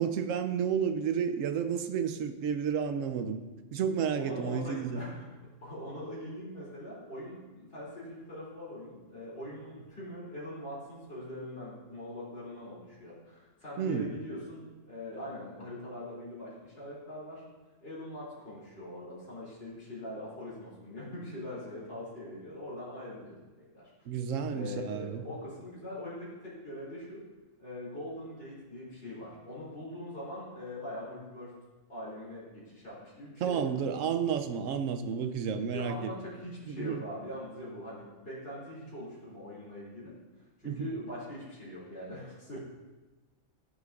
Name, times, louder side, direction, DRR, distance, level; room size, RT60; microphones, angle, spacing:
voice 1, 0.0-3.4 3.7-5.0 13.8-14.1 24.1-25.2 33.4-36.1 36.7-37.0 40.6-40.9, right 7 dB, 90° right, 9 dB, 1.0 m, -31 dB
voice 2, 4.0-5.3 5.6-17.4 17.8-23.4 23.7-23.8 24.5-27.2 27.6-31.5 31.9-34.1 35.7-40.1 40.6-42.6, left 1 dB, 50° left, -8 dB, 3.1 m, -42 dB
13.5 x 6.4 x 2.5 m, 1.2 s
omnidirectional pair, 1.3 m